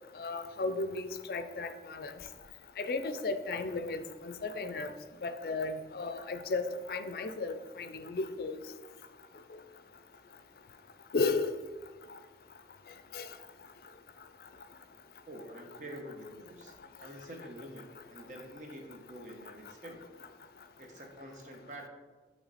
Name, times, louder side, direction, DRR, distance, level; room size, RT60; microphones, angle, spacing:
voice 1, 0.1-2.1 2.8-4.9 5.2-8.6 11.1-11.5 13.1-13.3, left 3 dB, 55° left, 10 dB, 0.4 m, -34 dB
voice 2, 15.3-16.7 17.0-20.1 20.8-21.9, equal, 45° right, 2 dB, 0.9 m, -47 dB
7.9 x 3.2 x 4.1 m, 1.4 s
head